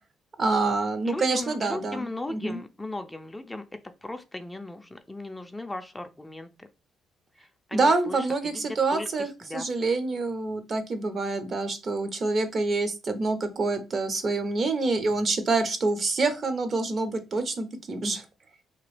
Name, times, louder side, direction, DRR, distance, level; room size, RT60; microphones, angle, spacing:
voice 1, 0.4-2.6 7.7-18.2, right 3 dB, 45° right, 9 dB, 0.6 m, -27 dB
voice 2, 1.1-3.6 4.0-6.7 7.4-9.7, left 2 dB, 10° left, 7 dB, 0.4 m, -37 dB
2.9 x 2.3 x 3.2 m, 0.28 s
cardioid pair, 90°, 0 cm